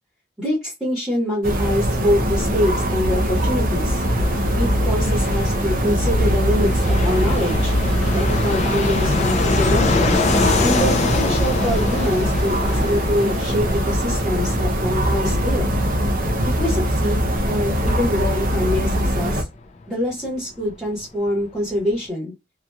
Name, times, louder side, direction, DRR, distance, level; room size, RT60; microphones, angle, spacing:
voice 1, 0.4-4.0 4.5-7.7 8.1-10.2 10.6-15.7 16.4-19.5 19.9-22.3, equal, 5° right, -6 dB, 1.2 m, -25 dB
sound 1, 1.4-19.4, equal, 45° right, 0.5 m, -21 dB
Fixed-wing aircraft airplane, 2.3-20.7 21.0-21.1 21.3-22.0, left 4 dB, 35° left, 0.4 m, -27 dB
2.9 x 2.5 x 2.2 m, 0.23 s
head